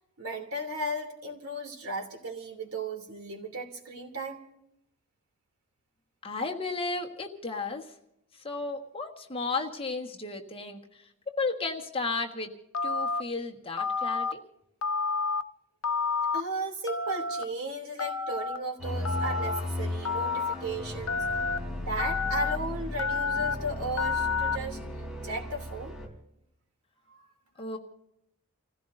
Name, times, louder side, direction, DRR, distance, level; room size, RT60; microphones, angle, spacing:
voice 1, 0.2-4.4 16.3-21.2 21.8-25.9 27.1-27.4, right 1 dB, 85° right, 2 dB, 2.9 m, -35 dB
voice 2, 6.2-7.8 8.4-10.8 11.4-12.5 12.8-14.4 27.6-27.8, left 3 dB, 25° left, 1 dB, 1.5 m, -33 dB
Telephone, 12.7-13.2 13.8-14.3 14.8-15.4 15.8-16.4 16.9-17.4 18.0-18.6 19.0-19.6 20.0-20.5 21.1-21.6 22.0-22.6 23.0-23.5 24.0-24.6, left 4 dB, 80° left, 0.7 m, -29 dB
sound 1, 18.8-26.1, left 1 dB, ahead, 3.4 m, -36 dB
30.0 x 16.0 x 2.6 m, 0.81 s
head